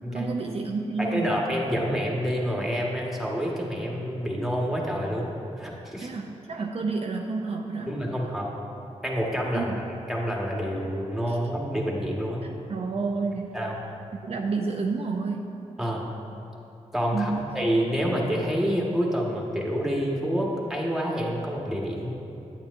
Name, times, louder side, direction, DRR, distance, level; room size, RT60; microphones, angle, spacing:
voice 1, 0.1-1.3 6.0-7.9 9.5-9.8 11.3-11.4 12.7-13.6 14.1-15.5 17.1-17.6, right 4 dB, 55° right, 1 dB, 0.5 m, -30 dB
voice 2, 1.0-6.1 7.9-8.5 9.0-12.4 13.5-13.8 15.8-16.0 16.9-22.1, equal, ahead, -2 dB, 1.4 m, -28 dB
8.9 x 8.4 x 2.6 m, 2.8 s
cardioid pair, 60°, 13 cm